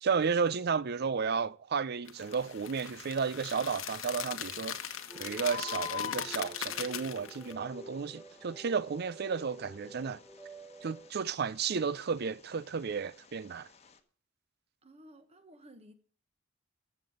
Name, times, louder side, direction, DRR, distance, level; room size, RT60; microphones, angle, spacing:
voice 1, 0.0-10.2 10.8-13.7, right 5 dB, 50° right, 0.5 m, -33 dB
sound 1, 2.1-7.5, left 9 dB, 70° left, 1.1 m, -40 dB
Bird, 2.1-14.0, left 8 dB, 30° left, 1.2 m, -48 dB
sound 2, 5.1-11.1, right 2 dB, 5° right, 0.6 m, -50 dB
voice 2, 14.8-15.9, right 1 dB, 30° right, 1.4 m, -55 dB
14.0 x 7.2 x 6.5 m
head